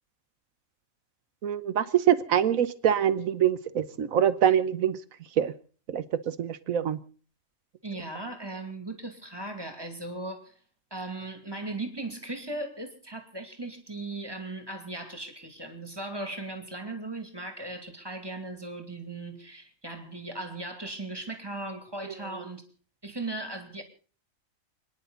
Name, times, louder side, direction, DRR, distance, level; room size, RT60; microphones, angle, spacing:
voice 1, 1.4-5.0 5.4-5.5 5.9-7.0 22.0-22.1, right 9 dB, 75° right, 14 dB, 1.4 m, -25 dB
voice 2, 7.8-10.5 10.9-22.7 23.0-23.8, right 2 dB, 15° right, 6 dB, 2.6 m, -38 dB
30.0 x 10.5 x 4.0 m, 0.40 s
omnidirectional pair, 1.4 m